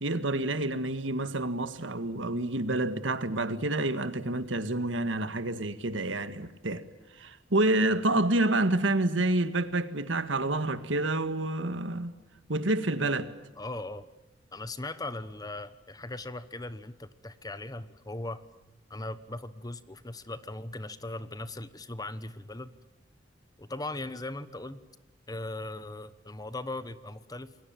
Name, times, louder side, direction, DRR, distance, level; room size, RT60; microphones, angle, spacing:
voice 1, 0.0-6.9 7.2-12.1 12.5-13.3, right 2 dB, 90° right, 1.8 m, -28 dB
voice 2, 13.6-14.1 14.5-18.4 18.9-22.7 23.6-24.8 25.3-27.5, left 2 dB, 20° left, 1.1 m, -39 dB
28.5 x 22.5 x 7.6 m
head